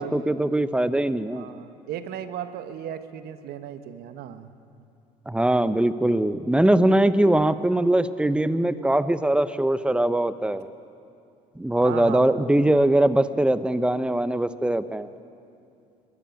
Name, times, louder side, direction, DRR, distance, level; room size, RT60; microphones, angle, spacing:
voice 1, 0.0-1.5 5.3-10.7 11.6-15.1, right 1 dB, 5° right, 13 dB, 0.9 m, -21 dB
voice 2, 1.3-4.6 11.8-12.5, right 9 dB, 70° right, 10 dB, 1.2 m, -36 dB
21.5 x 14.0 x 9.1 m, 2.6 s
supercardioid pair, 75°, 17 cm